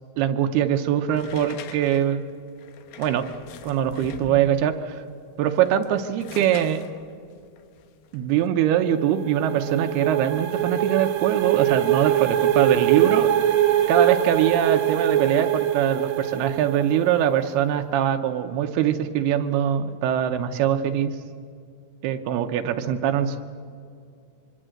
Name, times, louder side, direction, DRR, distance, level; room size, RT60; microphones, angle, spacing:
voice 1, 0.2-2.2 3.0-3.3 3.6-5.0 5.4-6.8 8.1-13.3 13.9-21.2 22.0-23.4, right 10 dB, 85° right, 6 dB, 2.9 m, -23 dB
sound 1, 1.1-4.8 5.5-8.5, left 7 dB, 75° left, 3.0 m, -42 dB
sound 2, 8.7-17.4, right 11 dB, 60° right, 2.0 m, -23 dB
24.5 x 24.0 x 7.8 m, 2.3 s
omnidirectional pair, 4.5 m